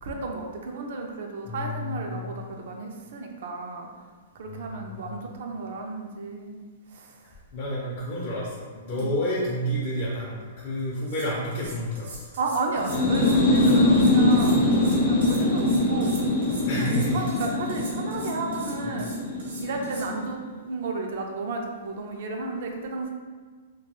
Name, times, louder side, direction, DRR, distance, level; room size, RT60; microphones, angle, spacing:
voice 1, 0.0-3.9 4.4-6.6 6.9-7.2 8.9-9.1 12.4-14.7 15.0-16.2 16.7-19.2 19.6-20.4 20.7-23.1, right 3 dB, 65° right, 2 dB, 0.4 m, -33 dB
voice 2, 1.5-2.3 4.5-5.1 7.5-12.3 16.7-17.2 18.8-18.9, equal, 45° left, -6 dB, 0.5 m, -30 dB
sound 1, 10.8-10.9 11.1-20.1, right 2 dB, 85° right, 0.8 m, -43 dB
sound 2, 12.8-20.3, left 2 dB, 75° left, 0.7 m, -23 dB
2.2 x 2.2 x 2.9 m, 1.5 s
hypercardioid pair, 150°, 0 cm